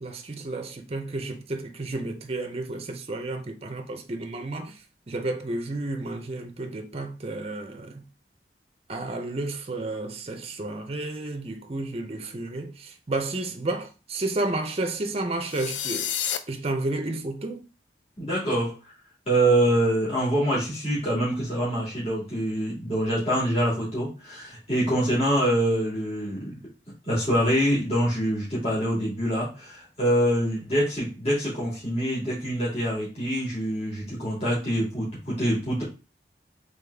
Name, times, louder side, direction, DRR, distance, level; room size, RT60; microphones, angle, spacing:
voice 1, 0.0-4.8 5.1-8.1 8.9-16.1 16.5-17.6, right 2 dB, 35° right, 0.6 m, -31 dB
sound 1, 15.5-16.4, left 10 dB, 90° left, 0.4 m, -29 dB
voice 2, 18.2-18.9 19.3-26.5 27.0-35.8, right 1 dB, 35° left, 2.3 m, -25 dB
3.9 x 3.6 x 3.4 m
head